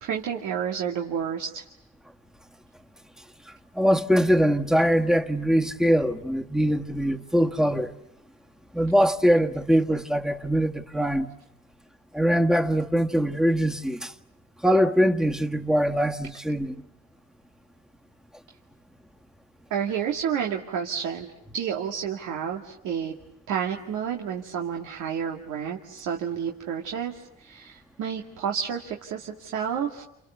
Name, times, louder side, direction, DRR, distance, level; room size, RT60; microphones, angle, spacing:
voice 1, 0.0-1.6 19.7-21.3 21.5-23.1 23.5-30.0, right 8 dB, 90° right, 2.2 m, -30 dB
voice 2, 3.7-7.9 8.7-11.3 12.1-14.1 14.6-16.8, equal, ahead, 1.6 m, -22 dB
29.5 x 28.5 x 7.0 m
cardioid pair, 90°, 30 cm